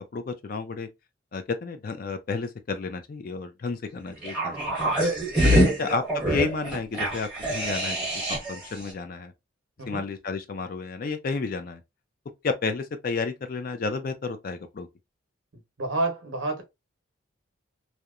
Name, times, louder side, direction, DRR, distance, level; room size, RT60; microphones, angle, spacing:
voice 1, 0.1-0.9 1.3-4.5 5.4-9.3 9.9-11.8 12.4-14.9, left 4 dB, 45° left, 0.4 m, -31 dB
sound 1, 4.2-8.6 8.9-9.0, equal, 5° right, 1.1 m, -25 dB
voice 2, 5.5-5.9 9.8-10.1 15.8-16.6, right 2 dB, 65° right, 0.8 m, -29 dB
2.8 x 2.1 x 2.3 m
head